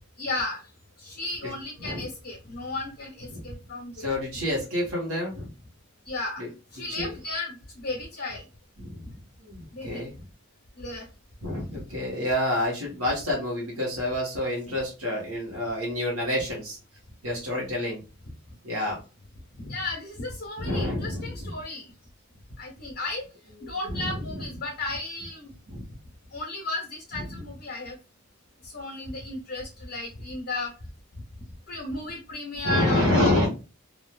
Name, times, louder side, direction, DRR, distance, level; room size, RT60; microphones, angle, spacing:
voice 1, 0.2-0.6 1.0-4.2 6.1-6.4 6.7-8.4 9.7-10.0 10.8-11.1 19.6-21.8 22.6-23.2 23.6-25.5 26.3-28.0 28.6-30.7 31.7-33.5, left 2 dB, 45° left, -2 dB, 0.9 m, -34 dB
voice 2, 3.9-5.5 6.4-6.5 6.8-7.2 8.8-9.0 9.4-10.1 11.4-16.8 17.2-18.0 18.6-19.0 20.6-21.5 23.5-24.6 25.7-25.9 27.1-27.4 32.6-33.5, left 1 dB, 75° right, -3 dB, 1.0 m, -28 dB
3.0 x 2.3 x 2.2 m, 0.31 s
head